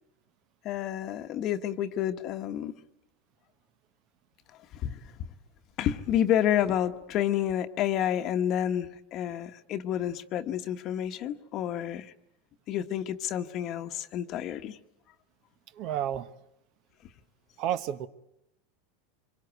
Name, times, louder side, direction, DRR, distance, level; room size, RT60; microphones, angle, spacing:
voice 1, 0.6-2.7 4.7-5.0 5.8-12.1 12.7-14.8, left 10 dB, 45° left, 1.1 m, -29 dB
voice 2, 15.8-16.3 17.6-18.1, right 10 dB, 50° right, 1.0 m, -30 dB
25.5 x 23.0 x 8.2 m
supercardioid pair, 135°, 0 cm